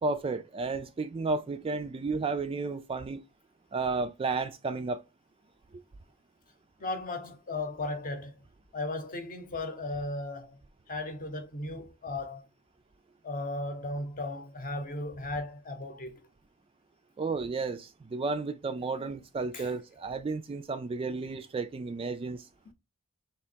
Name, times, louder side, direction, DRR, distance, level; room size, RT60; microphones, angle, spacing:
voice 1, 0.0-3.2 3.7-5.0 17.2-22.5, right 3 dB, 25° right, 0.3 m, -32 dB
voice 2, 6.8-8.3 8.7-10.6 10.9-12.4 13.2-16.2 19.5-19.7, left 2 dB, 40° left, 0.8 m, -36 dB
3.5 x 3.0 x 4.3 m
head